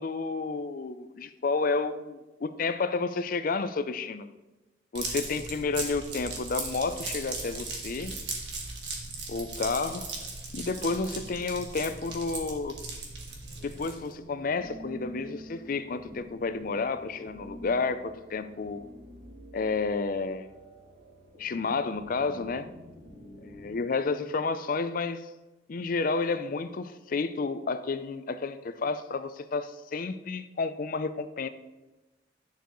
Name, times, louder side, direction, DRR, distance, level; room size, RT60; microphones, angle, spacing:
voice 1, 0.0-4.3 4.9-8.2 9.3-10.1 10.5-12.7 13.6-18.8 19.5-20.5 21.4-22.7 23.6-25.3 25.7-31.5, left 4 dB, 45° left, 12 dB, 0.4 m, -31 dB
sound 1, 4.9-14.1, right 3 dB, 60° right, 1.5 m, -38 dB
sound 2, 13.6-23.8, equal, 80° right, 2.3 m, -48 dB
10.5 x 6.8 x 3.1 m, 1.1 s
head